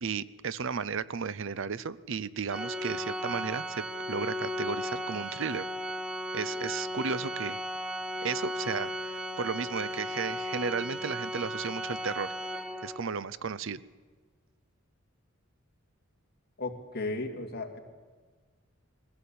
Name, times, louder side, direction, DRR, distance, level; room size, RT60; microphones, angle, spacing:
voice 1, 0.0-5.7 6.3-7.6 8.2-12.3 12.8-13.8, right 5 dB, 65° right, 17 dB, 0.6 m, -34 dB
Organ, 2.5-13.2, equal, 5° right, 0.9 m, -35 dB
voice 2, 16.6-17.8, left 2 dB, 50° left, 3 dB, 2.4 m, -35 dB
22.0 x 16.0 x 8.6 m, 1.4 s
head